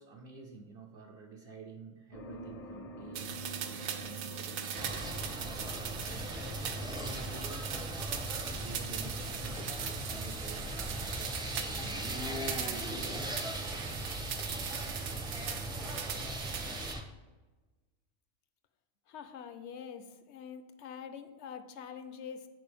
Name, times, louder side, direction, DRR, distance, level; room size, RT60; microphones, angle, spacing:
voice 1, 0.0-6.3 6.9-13.2, right 4 dB, 60° right, 0 dB, 0.8 m, -52 dB
sound 1, 2.1-10.1, equal, 45° left, 0.5 m, -49 dB
sound 2, 3.1-16.9, right 8 dB, 90° right, 1.0 m, -39 dB
sound 3, 4.8-17.0, equal, 5° right, 0.4 m, -39 dB
voice 2, 19.1-22.5, left 7 dB, 75° left, 9 dB, 0.9 m, -45 dB
9.4 x 4.4 x 3.4 m, 1.2 s
omnidirectional pair, 1.2 m